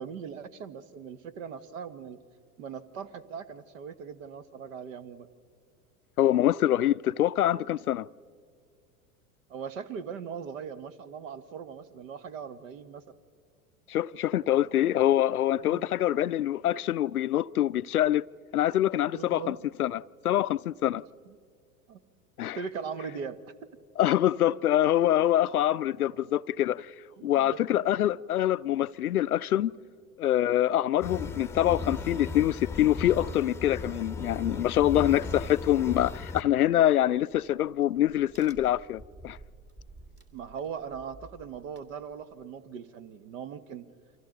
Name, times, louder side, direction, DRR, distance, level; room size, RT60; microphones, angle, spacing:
voice 1, 0.0-2.2 2.6-5.3 9.5-13.1 15.6-15.8 19.1-19.6 21.3-21.4 21.9-22.0 22.5-23.4 27.2-27.6 40.3-43.9, right 6 dB, 60° right, 1.4 m, -40 dB
voice 2, 6.2-8.1 13.9-18.2 18.5-21.0 22.4-22.6 24.0-26.9 27.2-29.7 30.2-39.4, left 12 dB, 85° left, 0.5 m, -25 dB
sound 1, 31.0-36.4, left 4 dB, 5° left, 0.9 m, -36 dB
Crack, 37.0-42.4, right 2 dB, 25° right, 2.4 m, -53 dB
30.0 x 24.5 x 3.9 m
figure-of-eight pair, 85°, 44 cm